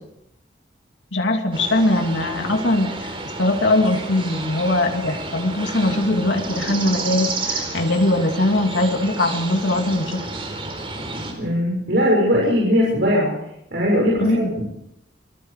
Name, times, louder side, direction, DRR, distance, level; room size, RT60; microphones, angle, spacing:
voice 1, 1.1-10.3 14.2-14.5, left 1 dB, 90° left, 3 dB, 2.9 m, -21 dB
sound 1, 1.5-11.3, right 3 dB, 30° right, 4.4 m, -31 dB
voice 2, 11.4-13.3 13.7-14.5, equal, 70° right, -4 dB, 6.4 m, -19 dB
26.5 x 20.0 x 5.0 m, 0.80 s
head